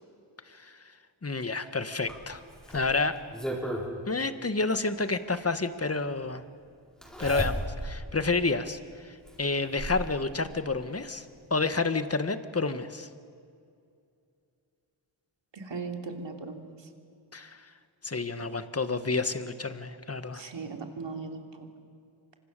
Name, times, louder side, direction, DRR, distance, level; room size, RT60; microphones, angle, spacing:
voice 1, 0.5-0.8 1.2-2.4 2.7-3.2 4.1-6.4 7.2-11.2 11.5-13.1 17.3-17.7 18.0-20.4, left 3 dB, 30° left, 10 dB, 1.5 m, -29 dB
Zipper (clothing), 2.1-3.9 5.3-5.4 7.0-8.0 8.5-8.6 9.3-10.1 11.3-11.4 11.7-11.8, equal, ahead, 6.7 m, -34 dB
voice 2, 15.5-16.7 20.3-21.4, right 4 dB, 65° right, 3 dB, 3.2 m, -38 dB
27.0 x 25.5 x 6.8 m, 2.4 s
cardioid pair, 65°, 48 cm